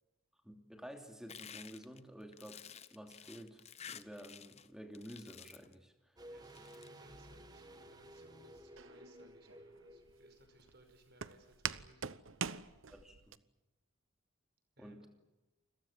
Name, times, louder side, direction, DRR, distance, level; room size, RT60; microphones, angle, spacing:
voice 1, 0.4-2.6 2.9-6.2 12.9-13.4 14.8-15.1, equal, 5° right, 4 dB, 2.9 m, -51 dB
sound 1, 1.3-4.7 4.9-5.7 6.4-6.9, left 8 dB, 30° left, 1.0 m, -52 dB
sound 2, 6.2-11.0 11.3-11.4, equal, 20° right, 1.9 m, -55 dB
voice 2, 6.2-12.2 14.8-15.1, right 2 dB, 50° right, 8 dB, 5.3 m, -65 dB
Walk footsteps, 8.8-13.4, right 7 dB, 80° right, 0.9 m, -44 dB
29.5 x 22.5 x 7.4 m, 1.0 s
head